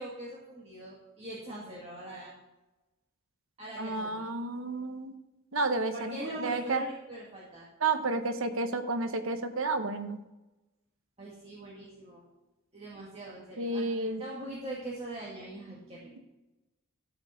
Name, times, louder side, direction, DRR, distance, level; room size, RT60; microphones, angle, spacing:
voice 1, 0.0-2.3 3.6-4.3 5.9-7.7 11.2-12.2 12.7-16.2, right 1 dB, 30° right, -6 dB, 1.9 m, -42 dB
voice 2, 3.8-5.1 5.5-6.8 7.8-10.2 13.6-14.2, right 3 dB, 70° right, 8 dB, 1.0 m, -31 dB
13.0 x 5.3 x 5.5 m, 1.0 s
head